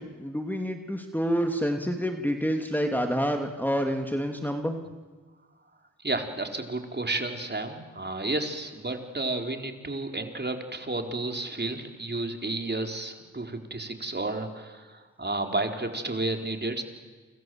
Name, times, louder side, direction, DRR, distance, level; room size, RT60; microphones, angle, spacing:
voice 1, 0.0-4.8, equal, 5° left, 3 dB, 2.8 m, -28 dB
voice 2, 6.0-16.8, right 2 dB, 30° right, 5 dB, 4.1 m, -31 dB
29.0 x 26.0 x 7.9 m, 1.4 s
cardioid pair, 50°, 34 cm